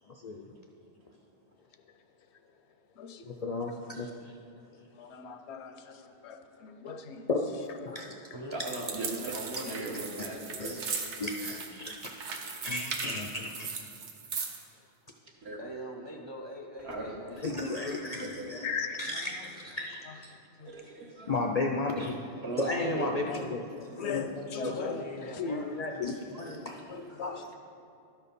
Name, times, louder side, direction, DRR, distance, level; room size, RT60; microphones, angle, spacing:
voice 1, 0.2-0.5 3.4-4.1 7.3-7.4 7.9-8.3 10.6-10.8 11.2-13.7 17.3-18.7 19.0-20.3 21.3-22.2 22.6-24.2 24.6-25.0 25.4-26.9 27.2-27.3, left 3 dB, 55° left, 1 dB, 0.4 m, -34 dB
voice 2, 1.7-4.1 4.7-7.3 7.7-8.1 9.1-9.3 9.6-10.0 17.5-17.8 18.2-19.5 20.0-20.2 20.6-20.7 23.3-23.4 24.0-25.5 26.9-27.5, left 5 dB, 80° left, 7 dB, 0.9 m, -41 dB
voice 3, 8.5-10.8 15.4-15.6 16.8-17.2 18.2-18.4 20.6-21.4 22.4-23.1 25.5-25.6 26.7-27.2, right 2 dB, 65° right, -2 dB, 1.5 m, -38 dB
sound 1, 8.6-14.6, right 5 dB, 90° right, 1.1 m, -38 dB
voice 4, 15.6-17.4 24.6-25.7, right 1 dB, 35° right, 1 dB, 0.4 m, -42 dB
12.0 x 4.5 x 5.2 m, 2.6 s
omnidirectional pair, 1.1 m